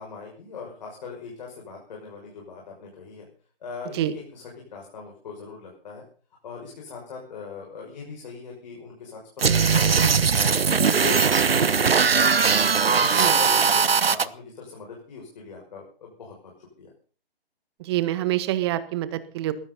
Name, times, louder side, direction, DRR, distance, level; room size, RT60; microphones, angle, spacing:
voice 1, 0.0-3.3 3.6-6.0 6.4-10.6 11.0-12.6 12.9-16.9, left 5 dB, 45° left, -1 dB, 6.3 m, -40 dB
sound 1, 9.4-14.2, right 5 dB, 70° right, 1.1 m, -20 dB
voice 2, 17.8-19.5, right 14 dB, 25° right, 13 dB, 1.6 m, -26 dB
21.0 x 16.0 x 4.0 m, 0.41 s
figure-of-eight pair, 140°, 30 cm